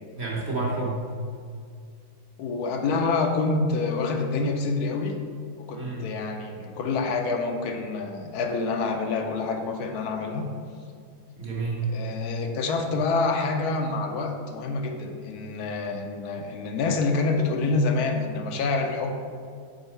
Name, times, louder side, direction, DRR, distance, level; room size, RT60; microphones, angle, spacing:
voice 1, 0.2-1.1 5.7-6.2 11.4-12.0, right 3 dB, 50° right, -3 dB, 1.0 m, -29 dB
voice 2, 2.4-5.2 5.6-10.5 11.9-19.1, left 3 dB, 80° left, 3 dB, 1.1 m, -27 dB
5.4 x 4.0 x 4.3 m, 2.2 s
omnidirectional pair, 1.7 m